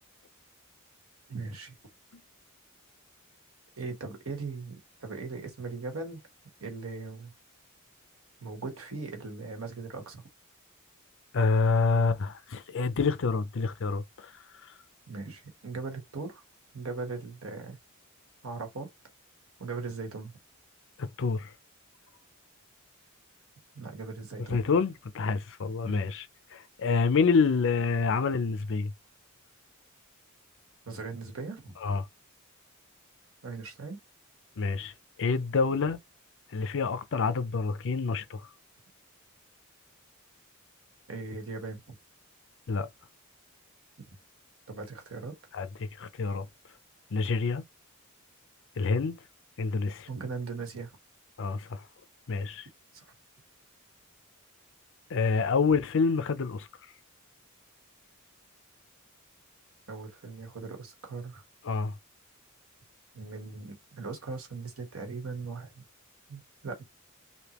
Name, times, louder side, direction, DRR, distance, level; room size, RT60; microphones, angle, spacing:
voice 1, 1.3-1.7 3.8-6.2 6.6-7.3 8.4-10.2 15.1-16.4 16.7-17.8 18.4-18.9 19.6-20.3 23.7-24.6 25.8-26.1 30.9-31.7 33.4-34.0 41.1-41.8 44.7-45.4 50.1-50.9 52.9-53.1 59.9-61.4 63.1-65.8 66.3-66.8, right 4 dB, 70° right, 1.3 m, -39 dB
voice 2, 11.3-14.3 21.2-21.5 24.5-26.2 26.5-28.9 31.8-32.0 34.6-34.9 35.2-36.0 36.5-38.5 42.7-42.9 45.5-45.7 46.0-46.4 47.1-47.6 48.8-49.2 49.6-50.1 51.4-51.8 52.3-52.7 55.1-56.7 61.7-61.9, left 4 dB, 60° left, 0.5 m, -27 dB
3.4 x 2.7 x 3.0 m
head